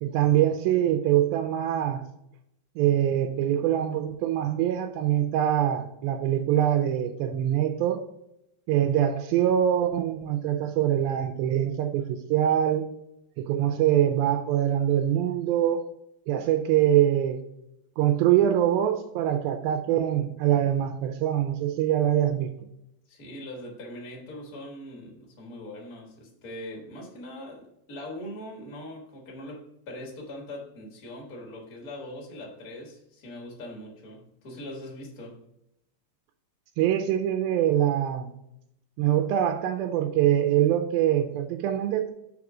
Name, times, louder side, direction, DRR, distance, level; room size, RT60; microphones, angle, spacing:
voice 1, 0.0-2.0 2.8-8.0 8.7-12.9 13.4-15.8 16.3-17.4 18.0-22.5 36.8-38.3 39.0-42.1, right 11 dB, 85° right, 2.3 m, -24 dB
voice 2, 23.1-35.4, left 1 dB, 50° left, 1.0 m, -41 dB
4.8 x 4.3 x 6.0 m
omnidirectional pair, 4.2 m